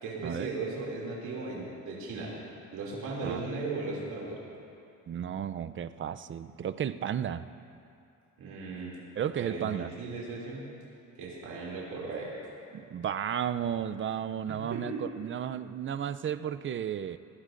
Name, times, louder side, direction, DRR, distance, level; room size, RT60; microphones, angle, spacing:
voice 1, 0.0-2.3 2.7-4.4 8.4-8.9 9.4-10.7 11.2-12.3 14.5-15.0, right 3 dB, 85° right, -4 dB, 2.7 m, -37 dB
voice 2, 5.1-7.5 9.2-9.9 12.7-17.2, right 9 dB, 40° right, 12 dB, 0.5 m, -33 dB
20.0 x 16.0 x 2.6 m, 2.6 s
cardioid pair, 90°, 30 cm